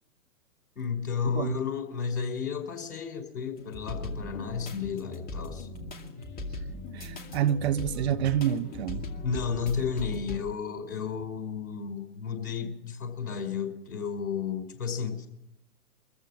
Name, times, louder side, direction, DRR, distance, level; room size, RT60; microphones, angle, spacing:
voice 1, 0.8-5.7 9.2-15.3, left 6 dB, 65° left, 5.4 m, -32 dB
sound 1, 3.6-10.4, left 2 dB, 20° left, 2.4 m, -39 dB
voice 2, 6.9-9.0, right 10 dB, 45° right, 1.0 m, -28 dB
24.0 x 14.5 x 7.5 m
figure-of-eight pair, 120°, 46 cm